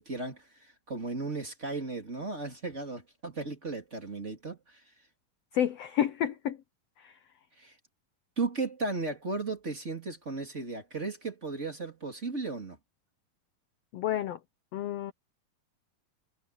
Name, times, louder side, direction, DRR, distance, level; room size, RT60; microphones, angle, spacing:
voice 1, 0.0-4.8 7.6-7.8 8.4-12.8, right 3 dB, 20° right, 2.9 m, -35 dB
voice 2, 5.5-6.6 7.0-7.2 13.9-14.4 14.7-15.1, left 10 dB, 75° left, 1.5 m, -30 dB
omnidirectional pair, 3.8 m